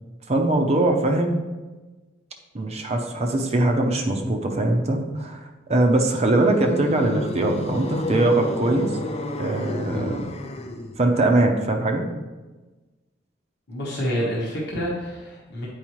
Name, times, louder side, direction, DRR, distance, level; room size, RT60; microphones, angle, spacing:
voice 1, 0.3-1.4 2.5-8.9 9.4-10.3 11.0-12.1, right 2 dB, 35° right, 3 dB, 0.6 m, -22 dB
sound 1, 6.4-11.0, left 2 dB, 35° left, 0.5 m, -31 dB
voice 2, 13.7-15.7, equal, 60° left, -5 dB, 1.3 m, -28 dB
8.6 x 4.7 x 3.0 m, 1.2 s
head